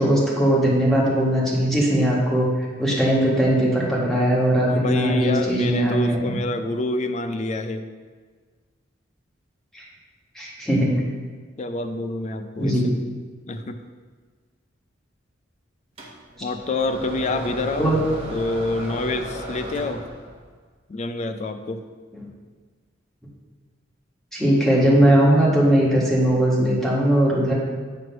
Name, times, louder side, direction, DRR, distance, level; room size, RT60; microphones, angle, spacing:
voice 1, 0.0-6.3 9.7-9.8 10.3-10.9 12.6-12.9 17.8-18.0 22.1-22.2 24.3-27.5, right 1 dB, ahead, -5 dB, 1.5 m, -19 dB
voice 2, 4.6-7.9 11.6-12.9 13.5-13.8 16.4-18.0 18.3-20.1 20.9-21.8, left 2 dB, 35° left, 8 dB, 0.4 m, -27 dB
sound 1, 16.0-20.5, equal, 30° right, 0.9 m, -34 dB
7.7 x 3.1 x 5.9 m, 1.5 s
head